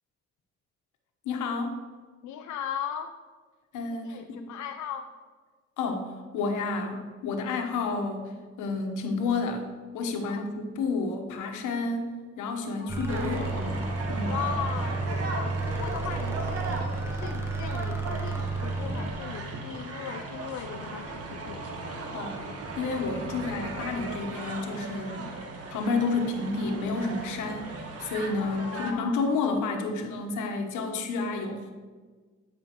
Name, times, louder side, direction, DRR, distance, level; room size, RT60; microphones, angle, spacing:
voice 1, 1.2-1.8 3.7-4.5 5.8-8.3 8.6-9.7 9.9-14.4 22.1-22.4 22.8-25.3 25.7-31.7, left 3 dB, 85° left, 4 dB, 1.1 m, -30 dB
voice 2, 2.2-3.2 4.0-5.1 10.2-10.5 12.8-13.9 14.2-21.7 28.4-29.2, left 9 dB, 70° left, 6 dB, 0.5 m, -38 dB
sound 1, 12.9-19.1, right 3 dB, 10° right, 0.9 m, -31 dB
sound 2, 13.1-28.9, right 3 dB, 50° right, 1.3 m, -37 dB
13.5 x 5.3 x 3.0 m, 1.4 s
cardioid pair, 90°, 30 cm